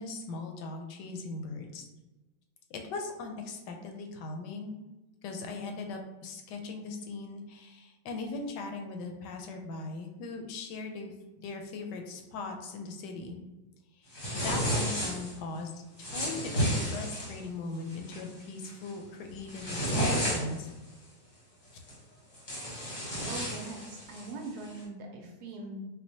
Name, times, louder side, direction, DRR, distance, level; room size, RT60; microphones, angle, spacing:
voice 1, 0.0-1.8 2.7-4.8 5.2-11.1 11.4-13.4 14.0-20.7, left 3 dB, 75° left, 3 dB, 1.2 m, -39 dB
sound 1, 14.1-15.3 16.0-17.4 17.9-18.2 18.6-18.9 19.3-20.7 21.9-22.0 22.3-24.3, equal, 35° left, 0.8 m, -32 dB
voice 2, 23.3-25.9, right 2 dB, 70° right, 0 dB, 1.0 m, -41 dB
4.3 x 2.2 x 2.7 m, 1.1 s
omnidirectional pair, 1.9 m